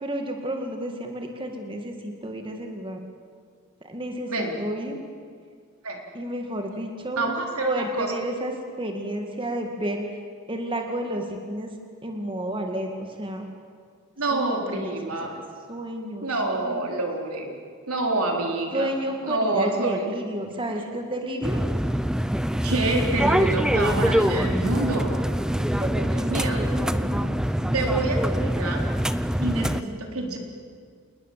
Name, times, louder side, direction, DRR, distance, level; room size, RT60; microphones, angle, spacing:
voice 1, 0.0-3.0 3.8-5.0 6.1-7.3 7.6-10.2 10.5-11.7 12.0-13.5 14.3-15.3 15.7-16.3 16.6-16.8 18.7-21.6 25.5-28.2 29.6-30.0, right 1 dB, 25° right, 3 dB, 2.1 m, -32 dB
voice 2, 7.2-8.1 14.2-15.4 16.2-17.5 17.9-18.9 19.2-20.1 22.6-25.1 26.3-26.6 27.7-28.9 29.4-30.4, right 2 dB, 85° right, 1 dB, 4.2 m, -27 dB
sound 1, 21.4-29.8, equal, 5° right, 0.6 m, -24 dB
28.0 x 20.0 x 7.6 m, 2.1 s
head